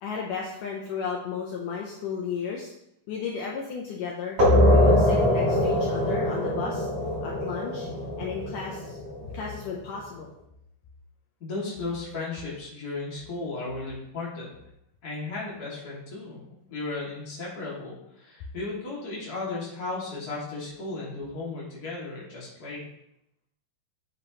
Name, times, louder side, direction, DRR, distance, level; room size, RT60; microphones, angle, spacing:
voice 1, 0.0-2.7 3.1-4.4 4.7-6.9 7.2-7.9 8.2-9.0 9.3-10.3, left 6 dB, 80° left, -2 dB, 1.9 m, -34 dB
sound 1, 4.4-9.7, left 1 dB, 45° right, 4.7 m, -23 dB
voice 2, 11.4-14.5 15.0-16.4 16.7-22.9, left 3 dB, 30° left, -6 dB, 2.1 m, -35 dB
8.1 x 7.8 x 3.1 m, 0.79 s
omnidirectional pair, 4.8 m